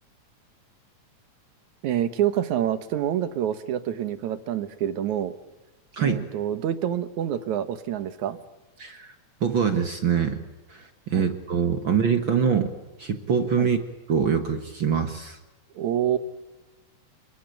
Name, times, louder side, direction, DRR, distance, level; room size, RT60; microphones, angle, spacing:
voice 1, 1.8-5.3 6.0-8.4 11.1-11.3 13.6-13.7 15.8-16.2, right 10 dB, 80° right, 12 dB, 2.7 m, -27 dB
voice 2, 5.9-6.3 8.8-9.1 9.4-10.4 10.7-12.7 13.0-13.8 14.1-15.4, right 7 dB, 50° right, 8 dB, 1.9 m, -24 dB
28.5 x 22.0 x 9.2 m, 1.1 s
omnidirectional pair, 3.3 m